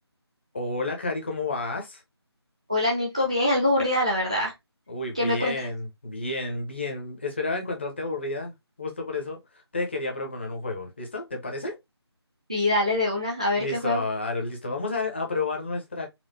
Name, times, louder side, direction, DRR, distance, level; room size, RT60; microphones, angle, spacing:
voice 1, 0.5-2.0 4.9-8.5 8.8-9.4 9.7-11.8 13.6-16.1, left 3 dB, 25° left, 0.7 m, -30 dB
voice 2, 2.7-4.5 5.1-5.7 12.5-14.0, left 1 dB, 15° right, 0.4 m, -24 dB
4.2 x 2.3 x 2.6 m
figure-of-eight pair, 160°, 14 cm